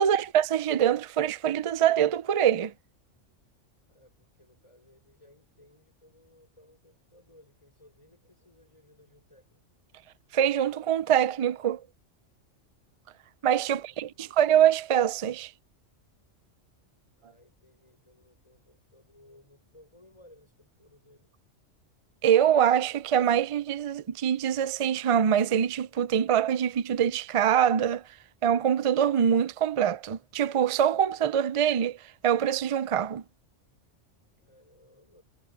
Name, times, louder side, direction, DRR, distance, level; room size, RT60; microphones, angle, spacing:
voice 1, 0.0-2.7 10.3-11.8 13.4-15.5 22.2-28.0 28.4-32.0 32.2-33.2, right 9 dB, 50° right, 0.3 m, -24 dB
voice 2, 3.9-9.6 13.6-14.2 17.2-21.3 34.4-35.2, left 1 dB, 25° left, 6.1 m, -59 dB
omnidirectional pair, 1.2 m